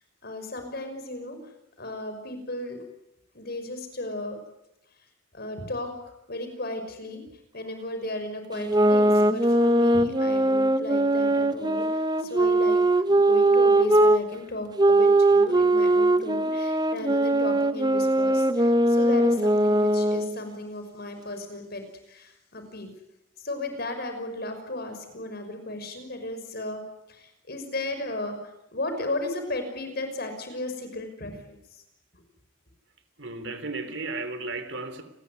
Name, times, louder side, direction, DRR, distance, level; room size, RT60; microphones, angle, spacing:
voice 1, 0.2-1.4 1.8-2.8 3.3-4.4 5.3-5.9 6.3-7.2 7.5-12.8 13.1-22.9 23.4-26.8 27.1-31.8 32.1-32.2, left 1 dB, 55° left, 7 dB, 6.0 m, -35 dB
sound 1, 8.6-14.2 14.8-20.4, right 1 dB, 20° right, 1.0 m, -21 dB
voice 2, 33.2-35.0, right 3 dB, 65° right, 10 dB, 3.4 m, -34 dB
29.0 x 21.0 x 9.6 m, 0.88 s
head